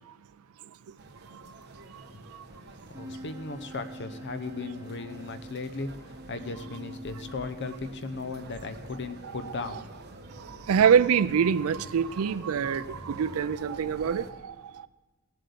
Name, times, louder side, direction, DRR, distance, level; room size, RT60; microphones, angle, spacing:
sound 1, 1.0-14.3, right 2 dB, 50° right, 1.2 m, -47 dB
voice 1, 2.6-9.9, left 3 dB, 55° left, 0.8 m, -37 dB
Wind instrument woodwind instrument, 2.9-8.6, equal, 15° right, 1.4 m, -45 dB
voice 2, 10.5-14.9, right 7 dB, 75° right, 0.4 m, -25 dB
17.0 x 7.8 x 6.8 m
head